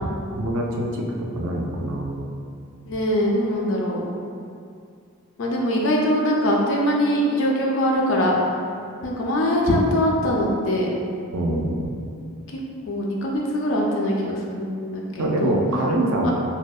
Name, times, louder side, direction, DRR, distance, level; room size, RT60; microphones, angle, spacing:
voice 1, 0.4-2.2 11.3-11.7 15.2-16.3, right 1 dB, 70° right, 0 dB, 0.3 m, -24 dB
voice 2, 2.9-4.0 5.4-8.3 9.0-10.9 12.5-12.6 12.9-15.5 16.2-16.3, equal, 60° left, -2 dB, 0.4 m, -22 dB
2.7 x 2.0 x 2.2 m, 2.3 s
head